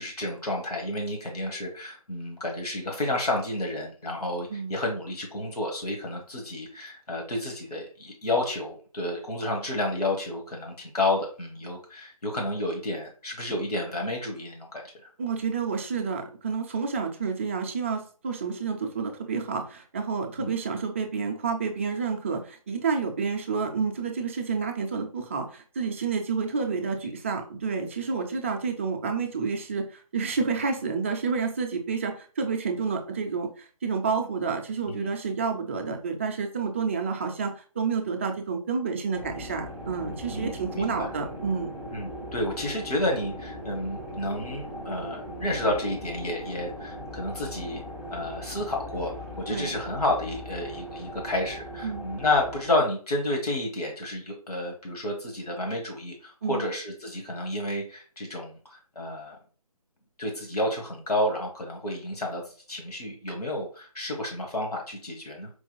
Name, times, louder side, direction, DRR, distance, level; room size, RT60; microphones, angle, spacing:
voice 1, 0.0-14.8 20.4-20.5 34.9-35.1 40.3-41.1 41.9-47.8 48.1-59.4 60.2-62.4 62.7-65.5, left 1 dB, 80° left, 0 dB, 1.3 m, -30 dB
voice 2, 15.2-41.7 49.5-49.7 51.8-52.1 56.4-56.7, right 5 dB, 20° right, 4 dB, 0.4 m, -29 dB
sound 1, 39.1-52.7, equal, 15° left, 1.3 m, -39 dB
4.6 x 2.8 x 2.3 m, 0.39 s
figure-of-eight pair, 145°, 19 cm